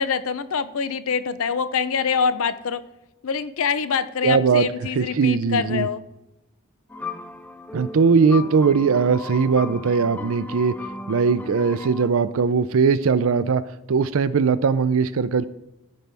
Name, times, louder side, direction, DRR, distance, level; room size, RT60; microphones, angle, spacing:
voice 1, 0.0-2.8 3.2-6.0, left 6 dB, 70° left, 13 dB, 0.5 m, -25 dB
voice 2, 4.2-4.7 5.0-5.9 7.7-10.8 11.1-13.6 13.9-15.5, right 5 dB, 70° right, 15 dB, 0.4 m, -20 dB
sound 1, 6.9-12.1, left 3 dB, 5° left, 0.3 m, -36 dB
14.5 x 5.3 x 3.4 m, 0.92 s
head